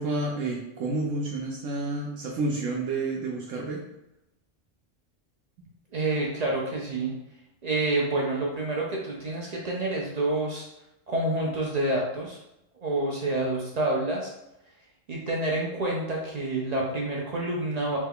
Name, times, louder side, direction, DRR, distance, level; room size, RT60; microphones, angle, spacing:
voice 1, 0.0-3.8, right 2 dB, 85° right, -3 dB, 1.0 m, -30 dB
voice 2, 5.9-7.1 7.6-10.6 11.1-12.4 12.8-14.3 15.1-18.0, right 2 dB, 65° right, -2 dB, 0.4 m, -28 dB
3.2 x 2.2 x 3.5 m, 0.85 s
omnidirectional pair, 1.3 m